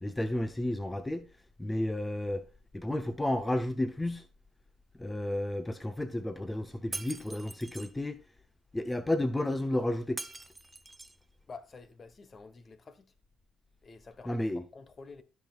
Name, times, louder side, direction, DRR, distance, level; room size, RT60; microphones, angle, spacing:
voice 1, 0.0-1.3 1.6-2.4 2.7-4.3 5.0-8.2 8.7-10.2 14.3-14.6, left 1 dB, 15° left, 0.7 m, -32 dB
Shatter, 6.9-7.9 10.2-11.2, right 2 dB, 15° right, 0.8 m, -42 dB
voice 2, 11.5-13.1 13.8-15.2, left 4 dB, 40° left, 1.2 m, -49 dB
16.0 x 5.7 x 2.4 m
supercardioid pair, 65°, 0 cm